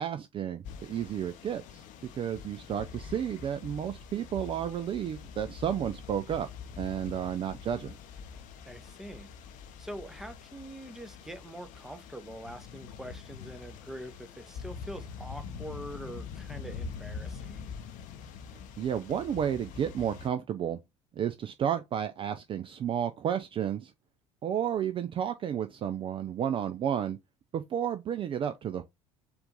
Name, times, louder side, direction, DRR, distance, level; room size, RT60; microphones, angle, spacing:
voice 1, 0.0-1.8 2.1-6.5 6.8-7.9 18.8-20.8 21.2-23.9 24.4-27.2 27.5-28.8, right 9 dB, 35° right, 0.4 m, -32 dB
sound 1, 0.6-20.3, left 6 dB, 50° left, 0.7 m, -44 dB
voice 2, 8.7-9.3 9.8-17.7, equal, ahead, 0.7 m, -44 dB
4.5 x 2.6 x 3.7 m
figure-of-eight pair, 60°, 16 cm